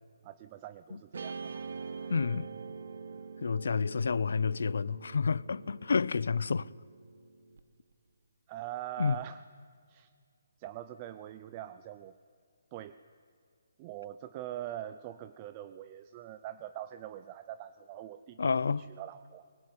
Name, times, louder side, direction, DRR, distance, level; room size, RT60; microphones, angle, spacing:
voice 1, 0.2-1.6 2.0-2.1 8.5-9.4 9.9-10.1 10.6-12.2 12.7-13.0 13.8-19.5, right 12 dB, 25° right, 0.6 m, -43 dB
Guitar, 1.1-7.6, right 5 dB, 65° right, 1.5 m, -45 dB
voice 2, 2.1-2.5 3.4-6.7 9.0-9.2 18.4-18.8, left 5 dB, 75° left, 0.6 m, -29 dB
23.5 x 21.5 x 9.6 m
hypercardioid pair, 165°, 0 cm